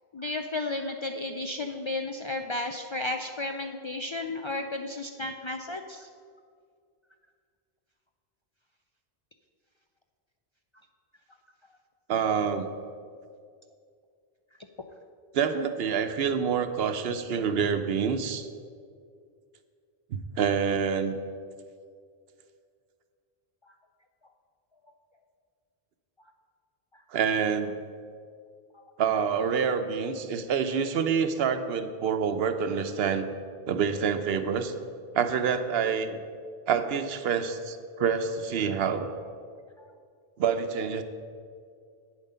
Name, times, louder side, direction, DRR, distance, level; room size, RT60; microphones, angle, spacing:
voice 1, 0.1-6.1 23.6-23.7 26.9-27.0 28.7-28.8 39.8-39.9, left 2 dB, 50° left, 4 dB, 0.3 m, -33 dB
voice 2, 12.1-12.7 15.3-18.5 20.1-21.2 27.1-27.7 29.0-33.3 33.7-34.7 35.1-36.2 36.7-39.1 40.4-41.0, right 6 dB, 75° right, 9 dB, 0.9 m, -27 dB
9.0 x 7.3 x 5.5 m, 2.2 s
omnidirectional pair, 1.0 m